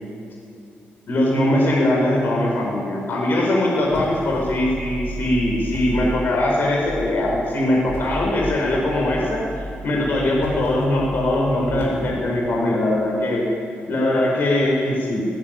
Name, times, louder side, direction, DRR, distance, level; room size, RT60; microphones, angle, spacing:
voice 1, 1.1-9.4 9.8-13.4 13.9-15.3, left 1 dB, 55° left, -2 dB, 5.4 m, -21 dB
sound 1, 3.9-4.7 5.6-6.3 7.9-8.4 10.3-11.0 11.8-12.5, left 1 dB, 75° left, 5.4 m, -35 dB
sound 2, 3.9-6.5 6.8-7.4 7.8-12.0, equal, 20° right, 1.9 m, -33 dB
19.5 x 19.5 x 9.4 m, 2.5 s
wide cardioid pair, 145°, 4 cm